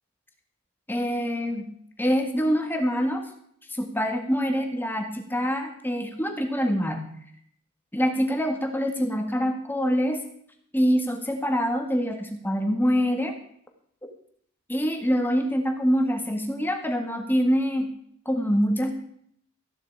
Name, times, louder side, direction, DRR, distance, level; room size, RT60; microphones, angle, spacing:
voice 1, 0.9-1.7 2.0-3.3 3.7-7.0 7.9-10.2 10.7-13.3 14.7-17.9 18.3-18.9, equal, 10° left, 4 dB, 1.8 m, -25 dB
15.0 x 11.0 x 4.9 m, 0.66 s
head